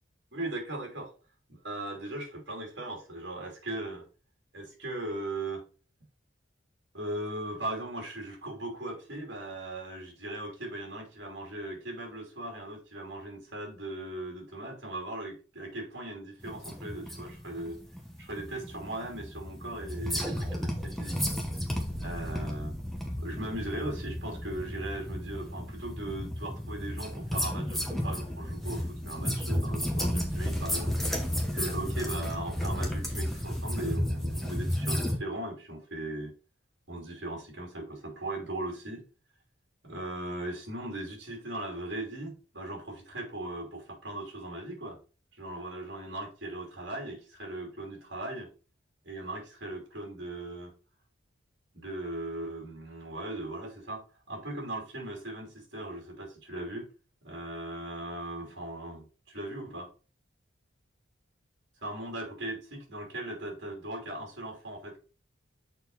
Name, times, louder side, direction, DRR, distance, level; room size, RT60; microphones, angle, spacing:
voice 1, 0.3-1.1 1.5-4.1 4.5-5.7 6.9-17.8 18.2-21.2 22.0-22.8 23.2-31.0 31.5-36.3 36.9-39.0 39.8-45.0 45.3-48.5 49.0-50.7 51.7-56.9 57.2-59.9 61.8-65.0, right 1 dB, 65° right, 1 dB, 2.8 m, -38 dB
sound 1, 16.4-35.2, equal, ahead, 1.0 m, -33 dB
6.5 x 4.5 x 3.9 m, 0.35 s
head